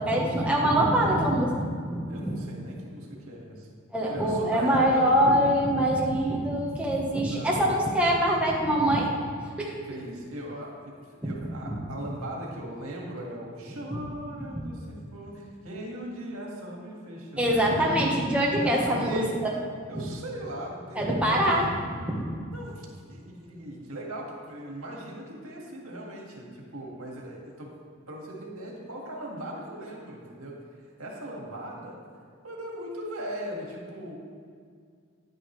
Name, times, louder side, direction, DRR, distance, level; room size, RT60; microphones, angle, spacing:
voice 1, 0.0-2.0 2.3-2.4 3.9-9.1 9.6-9.7 11.2-11.4 11.7-11.8 13.9-14.0 17.4-19.5 20.9-21.7 22.0-22.3, right 1 dB, 5° right, -4 dB, 1.2 m, -24 dB
voice 2, 2.1-3.7 4.1-5.3 6.8-7.7 9.8-10.9 11.2-17.9 18.6-19.3 19.9-21.5 22.5-27.7 28.1-32.0 32.4-34.1, right 1 dB, 85° right, -2 dB, 1.9 m, -39 dB
10.0 x 10.0 x 3.2 m, 2.1 s
head